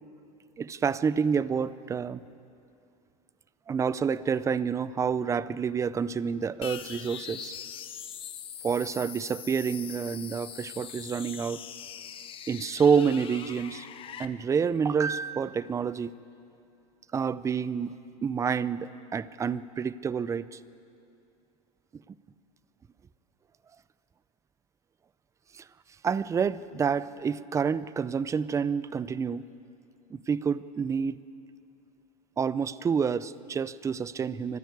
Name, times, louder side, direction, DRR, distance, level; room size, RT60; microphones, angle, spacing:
voice 1, 0.6-2.2 3.7-7.5 8.6-11.6 12.5-13.9 14.2-16.1 17.1-17.9 18.2-20.6 25.5-25.6 26.0-29.4 30.1-31.2 32.4-34.6, right 6 dB, 15° right, 17 dB, 0.5 m, -28 dB
sound 1, 6.6-14.3, left 9 dB, 30° left, 1.0 m, -42 dB
24.5 x 14.5 x 9.4 m, 2.6 s
supercardioid pair, 130°, 19 cm